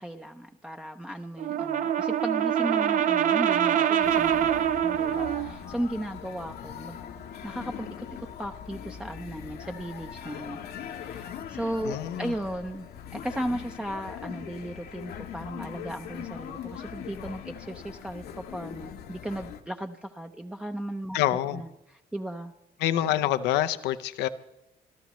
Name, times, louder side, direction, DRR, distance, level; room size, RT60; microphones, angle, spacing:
voice 1, 0.0-7.0 7.4-10.6 10.9-12.9 13.1-21.2 21.5-21.7 22.1-22.5, right 1 dB, 5° right, 4 dB, 0.6 m, -36 dB
Brass instrument, 1.4-5.6, right 10 dB, 50° right, 0.5 m, -24 dB
sound 1, 4.0-19.6, left 8 dB, 70° left, 1.1 m, -41 dB
voice 2, 11.8-12.3 21.1-21.6 22.8-24.3, left 12 dB, 85° left, 12 dB, 0.7 m, -26 dB
27.0 x 12.5 x 3.1 m, 0.90 s
cardioid pair, 110°, 17 cm